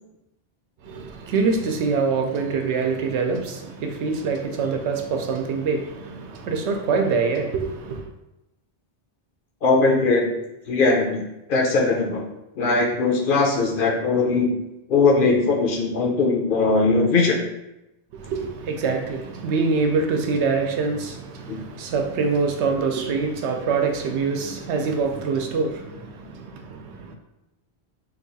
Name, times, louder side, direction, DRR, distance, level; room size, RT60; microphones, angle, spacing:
voice 1, 0.8-8.1 18.1-27.2, right 4 dB, 85° right, 3 dB, 0.9 m, -25 dB
voice 2, 9.6-10.3 10.7-11.2 11.5-12.2 12.6-14.5 14.9-17.4 21.5-21.6, left 3 dB, 60° left, -1 dB, 0.7 m, -20 dB
2.9 x 2.3 x 3.9 m, 0.92 s
omnidirectional pair, 1.1 m